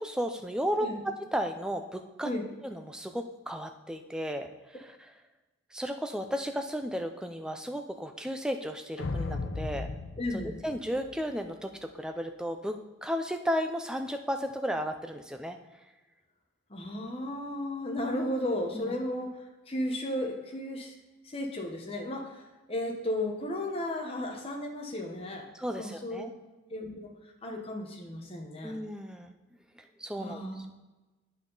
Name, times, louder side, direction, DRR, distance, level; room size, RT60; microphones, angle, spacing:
voice 1, 0.0-2.3 2.6-5.0 5.7-9.9 10.6-15.6 18.7-19.0 25.5-26.3 28.6-29.3 29.8-30.7, equal, 5° right, 5 dB, 0.4 m, -34 dB
sound 1, 9.0-11.5, left 3 dB, 65° left, 0.6 m, -36 dB
voice 2, 10.2-10.6 16.7-19.4 19.7-20.9 21.2-26.3 26.7-28.8 30.1-30.7, left 1 dB, 25° left, 1 dB, 1.0 m, -34 dB
8.4 x 5.7 x 3.9 m, 1.1 s
head